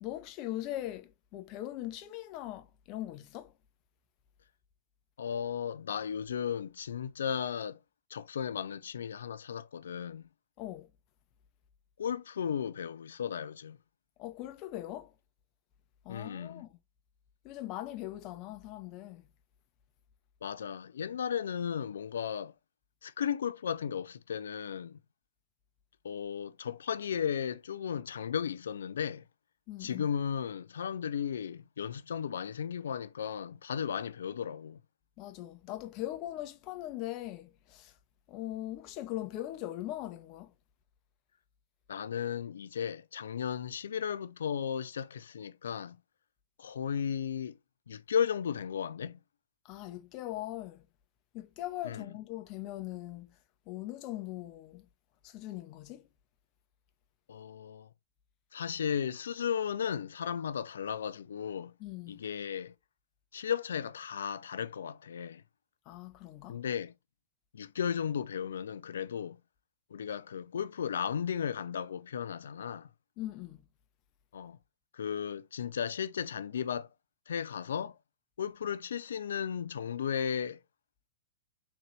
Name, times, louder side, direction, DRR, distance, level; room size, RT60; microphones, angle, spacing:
voice 1, 0.0-3.5 10.6-10.9 14.2-15.1 16.0-16.8 17.4-19.2 29.7-30.1 35.2-37.9 38.3-40.5 49.6-50.9 51.3-53.4 53.7-54.9 55.2-56.1 61.8-62.2 65.9-66.6 73.2-73.7, left 14 dB, 40° left, 0.7 m, -40 dB
voice 2, 5.2-7.8 8.1-10.2 12.0-13.8 16.1-16.6 20.4-22.5 23.0-25.0 26.0-29.2 29.8-34.8 41.9-46.0 46.6-47.6 47.9-49.2 51.8-52.1 57.3-57.9 58.5-61.7 62.1-62.7 63.3-65.4 66.5-66.9 67.5-69.4 69.9-72.9 74.3-74.6 74.9-76.9 77.3-77.9 78.4-80.6, left 8 dB, 70° left, 0.3 m, -35 dB
3.9 x 3.2 x 3.1 m
figure-of-eight pair, 100°, 0 cm